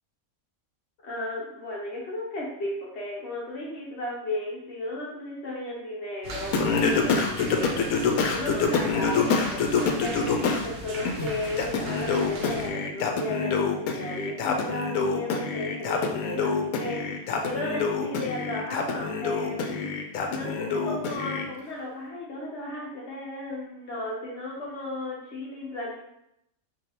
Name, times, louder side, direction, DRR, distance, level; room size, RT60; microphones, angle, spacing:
voice 1, 1.0-7.9 8.3-16.5 16.8-19.8 20.3-26.0, left 1 dB, 55° left, -5 dB, 0.9 m, -34 dB
sound 1, 6.2-12.7, right 1 dB, 55° right, 0.7 m, -38 dB
Singing, 6.5-10.7 11.1-21.5, left 5 dB, 80° left, 1.0 m, -26 dB
4.9 x 2.6 x 2.8 m, 0.79 s
omnidirectional pair, 1.5 m